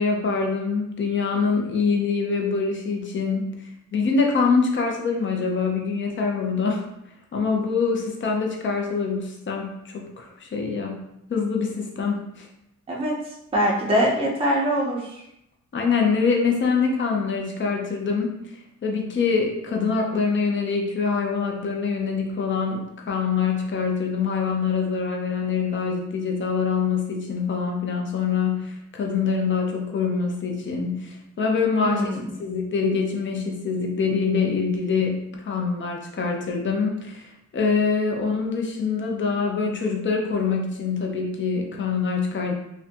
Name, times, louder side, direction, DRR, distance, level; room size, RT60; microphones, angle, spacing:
voice 1, 0.0-3.4 3.9-6.9 7.3-11.0 11.3-12.5 15.7-18.4 18.8-32.1 32.4-42.5, left 5 dB, 40° left, 0 dB, 0.5 m, -24 dB
voice 2, 13.5-15.0 31.8-32.2, equal, 20° right, -3 dB, 0.5 m, -22 dB
2.5 x 2.2 x 2.5 m, 0.81 s
cardioid pair, 100°, 29 cm